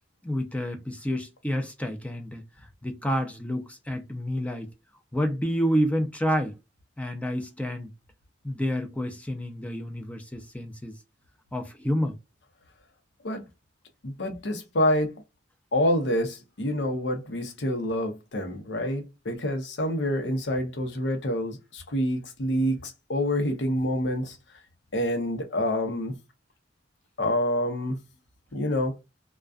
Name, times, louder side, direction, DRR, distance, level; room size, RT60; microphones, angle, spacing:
voice 1, 0.2-2.4 2.8-4.7 5.1-6.6 7.0-7.9 8.4-11.0 11.5-12.2, equal, 10° left, 0.5 m, -29 dB
voice 2, 14.0-15.2 15.7-24.4 24.9-26.2 27.2-28.0 28.5-29.0, left 1 dB, 90° left, 0.8 m, -27 dB
2.3 x 2.3 x 2.3 m
head